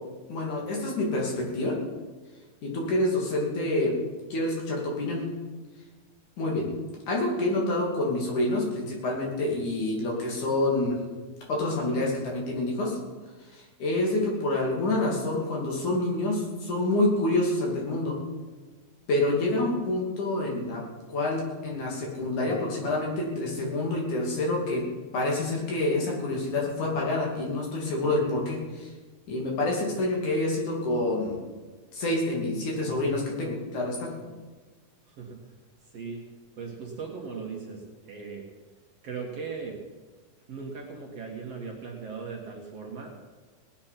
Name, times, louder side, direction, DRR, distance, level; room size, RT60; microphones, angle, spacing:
voice 1, 0.3-1.8 2.6-3.9 4.3-5.2 6.4-6.7 7.1-11.0 11.5-13.0 13.5-18.1 19.1-20.8 21.1-24.8 25.1-28.9 29.3-31.4 31.9-34.1, left 2 dB, 60° left, -2 dB, 4.1 m, -27 dB
voice 2, 35.1-35.5 35.8-36.2 36.6-38.4 39.0-39.8 40.5-43.1, right 5 dB, 50° right, -1 dB, 2.4 m, -38 dB
18.5 x 9.7 x 5.9 m, 1.3 s
omnidirectional pair, 4.1 m